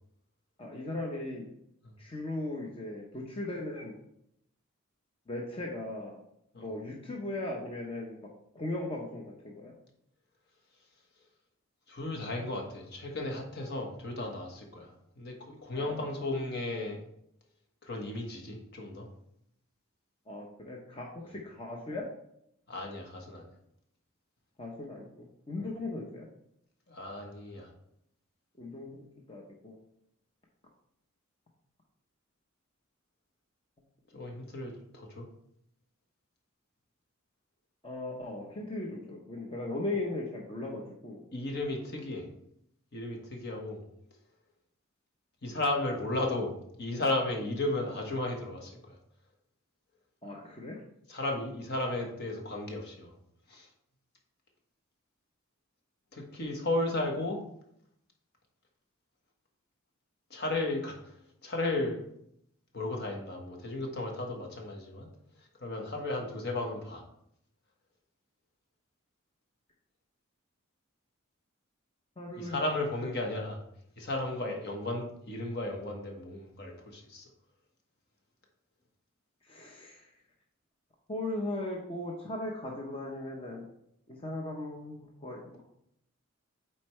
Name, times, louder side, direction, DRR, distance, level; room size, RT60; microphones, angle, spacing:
voice 1, 0.6-1.4 2.0-3.9 5.3-6.2 6.6-8.2 8.5-9.7 15.7-16.0 20.3-22.0 24.6-26.3 28.6-29.0 29.3-29.8 37.8-41.2 50.2-50.8 72.2-72.6 74.4-74.6 79.5-80.0 81.1-83.7 84.1-85.6, left 2 dB, 25° left, -1 dB, 0.8 m, -38 dB
voice 2, 11.9-17.0 17.8-19.1 22.7-23.5 25.6-25.7 26.9-27.7 34.1-35.3 41.3-42.3 42.9-43.8 45.4-49.0 51.1-53.1 53.5-53.7 56.1-57.4 60.3-61.2 61.4-62.0 62.7-65.1 65.4-67.0 72.4-73.6 74.0-77.3, left 2 dB, 55° left, 1 dB, 1.3 m, -34 dB
8.1 x 4.4 x 3.2 m, 0.74 s
head